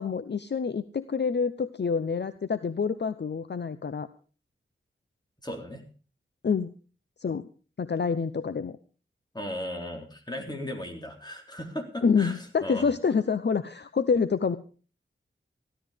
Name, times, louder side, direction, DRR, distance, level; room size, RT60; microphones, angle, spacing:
voice 1, 0.0-4.1 6.4-6.7 7.2-7.4 7.8-8.8 12.0-14.6, left 5 dB, 55° left, 12 dB, 0.7 m, -27 dB
voice 2, 5.4-5.8 9.3-12.9, left 1 dB, 20° left, 3 dB, 3.8 m, -36 dB
15.5 x 12.5 x 5.1 m, 0.39 s
wide cardioid pair, 70°, 21 cm